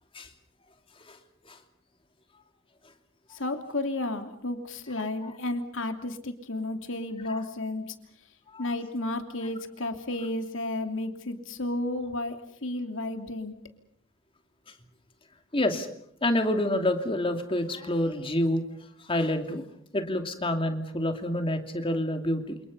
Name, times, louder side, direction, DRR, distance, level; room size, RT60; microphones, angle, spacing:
voice 1, 3.3-7.9 8.6-13.5, left 2 dB, 70° left, 6 dB, 2.9 m, -32 dB
voice 2, 15.5-15.9 16.2-18.6 19.1-19.6 19.9-22.6, left 1 dB, 25° left, 6 dB, 2.7 m, -28 dB
28.5 x 28.0 x 5.6 m, 0.65 s
head